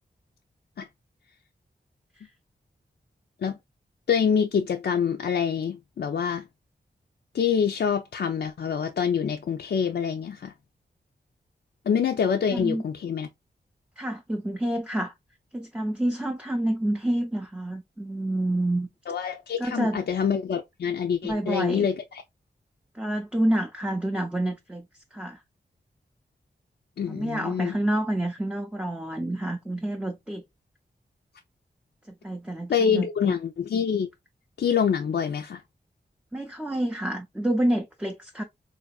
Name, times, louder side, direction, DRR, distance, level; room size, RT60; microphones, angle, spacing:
voice 1, 4.1-6.4 7.3-10.5 11.9-13.3 19.1-22.2 27.0-27.8 32.7-34.1 34.6-35.6, left 7 dB, 70° left, 0.4 m, -26 dB
voice 2, 12.5-12.8 14.0-15.1 15.5-18.9 19.6-20.0 21.2-21.9 22.9-25.4 27.1-30.4 32.2-33.3 36.3-38.4, right 1 dB, 5° right, 0.4 m, -28 dB
3.8 x 2.6 x 2.3 m
wide cardioid pair, 80°, 18 cm